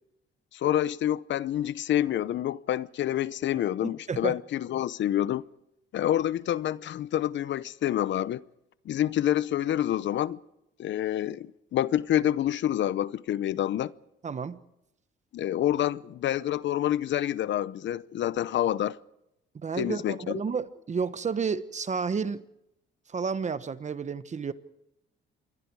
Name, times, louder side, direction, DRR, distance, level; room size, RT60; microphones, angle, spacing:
voice 1, 0.5-5.4 5.9-8.4 8.9-10.4 10.8-13.9 15.3-19.0 19.8-20.4, left 12 dB, 70° left, 0.8 m, -27 dB
voice 2, 3.8-4.4 14.2-14.6 19.5-22.4 23.1-24.5, right 5 dB, 35° right, 1.2 m, -31 dB
27.0 x 22.0 x 4.8 m
cardioid pair, 90°, 20 cm